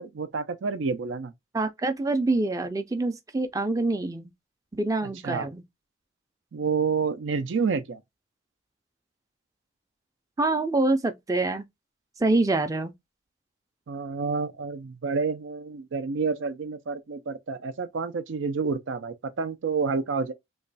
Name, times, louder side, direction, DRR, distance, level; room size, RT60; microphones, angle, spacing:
voice 1, 0.0-1.3 5.0-5.5 6.5-8.0 13.9-20.3, right 5 dB, 80° right, 0.5 m, -29 dB
voice 2, 1.5-4.3 4.7-5.6 10.4-11.6 12.2-12.9, right 2 dB, 20° right, 0.4 m, -25 dB
3.1 x 2.2 x 3.9 m
head